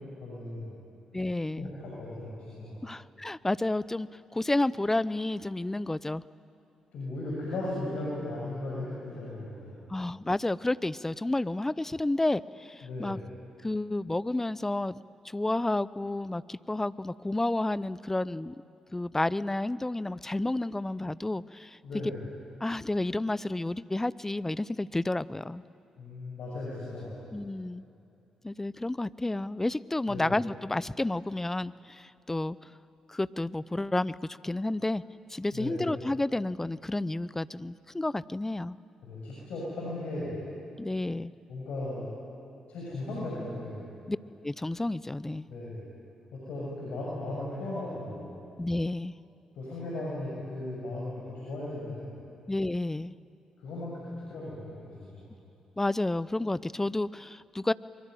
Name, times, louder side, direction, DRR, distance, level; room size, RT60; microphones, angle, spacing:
voice 1, 0.2-0.8 1.5-2.8 6.9-9.8 12.8-13.2 21.8-22.2 26.0-27.3 30.1-30.3 35.5-35.9 39.0-40.4 41.5-42.1 42.7-43.8 45.5-45.9 46.3-48.3 49.5-52.2 53.6-55.3, left 2 dB, 70° left, -5 dB, 6.5 m, -37 dB
voice 2, 1.1-1.7 2.8-6.2 9.9-13.2 13.6-15.0 15.2-18.6 18.9-21.8 22.6-25.6 27.3-27.8 28.4-32.7 33.1-35.0 35.3-38.8 40.8-41.3 44.1-44.2 44.4-45.5 48.6-49.1 52.5-53.1 55.8-57.7, left 2 dB, 15° left, 19 dB, 0.7 m, -31 dB
25.0 x 23.0 x 9.3 m, 2.8 s
hypercardioid pair, 40°, 2 cm